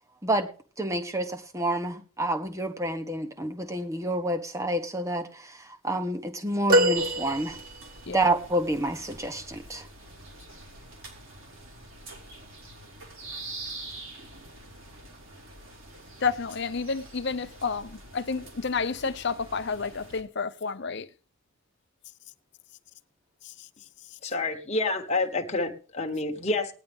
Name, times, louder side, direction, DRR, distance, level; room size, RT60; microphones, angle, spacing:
voice 1, 0.8-5.5 5.8-7.6 8.1-9.8, right 1 dB, 15° right, 1.2 m, -28 dB
sound 1, 6.7-8.1 10.5-10.7 12.0-12.1, right 1 dB, 40° right, 2.1 m, -24 dB
sound 2, 7.0-20.2, right 2 dB, 65° right, 4.2 m, -45 dB
voice 2, 16.2-21.1 23.4-23.7, left 5 dB, 55° left, 0.7 m, -30 dB
voice 3, 24.2-26.7, left 2 dB, 30° left, 1.4 m, -28 dB
18.5 x 10.5 x 3.6 m
head